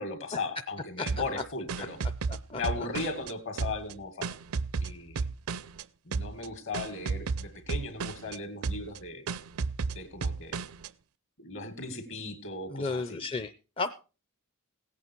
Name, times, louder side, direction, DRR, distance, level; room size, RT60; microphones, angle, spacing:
voice 1, 0.0-2.0 2.5-4.3 4.8-5.2 6.0-9.2 9.9-10.6 11.4-13.2, left 3 dB, 60° left, 8 dB, 2.3 m, -37 dB
sound 1, 1.1-3.3 3.6-5.8 6.1-6.5 6.7-8.4 8.6-9.0 9.3-10.9, right 4 dB, 70° right, 0.5 m, -33 dB
voice 2, 2.3-2.6 12.7-13.9, left 3 dB, 25° left, 9 dB, 0.5 m, -33 dB
16.5 x 8.4 x 4.6 m, 0.33 s
head